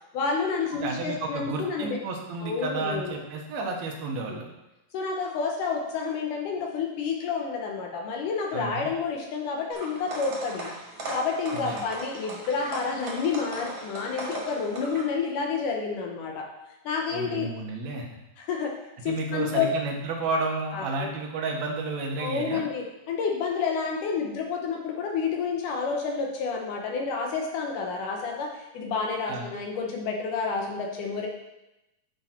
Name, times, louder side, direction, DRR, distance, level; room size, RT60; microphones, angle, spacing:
voice 1, 0.1-2.0 2.4-3.2 4.3-4.4 4.9-10.7 11.1-16.5 16.9-17.5 18.5-18.7 19.0-19.7 20.7-21.1 22.2-31.3, left 5 dB, 70° left, 1 dB, 2.3 m, -29 dB
voice 2, 0.8-4.5 8.5-8.9 11.5-11.9 17.1-18.1 19.1-22.6 29.3-29.5, right 3 dB, 65° right, 1 dB, 1.9 m, -31 dB
sound 1, 9.7-15.0, right 2 dB, 40° right, 2.0 m, -38 dB
10.5 x 5.3 x 4.4 m, 0.94 s
omnidirectional pair, 4.3 m